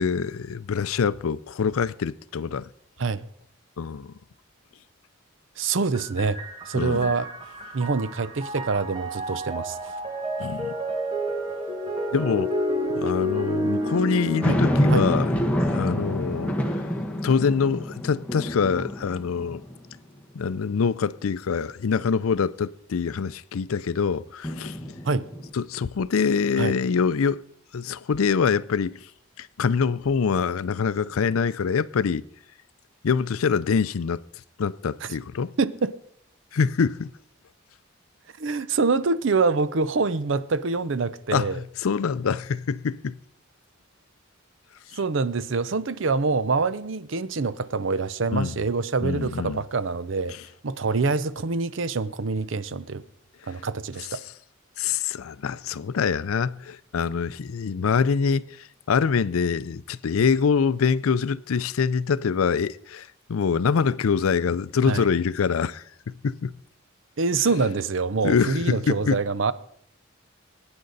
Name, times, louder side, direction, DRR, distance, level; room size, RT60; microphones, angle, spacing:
voice 1, 0.0-2.7 3.8-4.1 6.8-7.1 10.4-10.7 12.1-12.5 12.9-15.3 15.7-16.5 17.2-19.6 20.3-24.8 25.5-27.4 27.7-29.1 29.4-32.3 33.0-34.2 34.6-35.5 36.5-37.1 41.3-43.2 48.3-48.6 49.0-49.6 54.1-54.2 54.8-66.5 68.2-69.2, left 6 dB, 80° left, 0.5 m, -25 dB
voice 2, 5.6-6.4 6.7-7.3 7.7-9.8 14.5-14.6 14.9-15.1 25.0-25.3 26.6-26.8 35.0-35.1 35.6-35.9 38.4-41.6 45.0-50.4 50.6-53.0 53.5-54.2 64.9-65.1 67.2-69.5, right 4 dB, 60° right, 0.6 m, -25 dB
sound 1, 5.9-14.8, equal, 25° right, 1.5 m, -30 dB
sound 2, 14.4-20.0 20.5-20.6 24.4-25.5, equal, 5° left, 1.2 m, -26 dB
21.5 x 9.7 x 4.0 m
head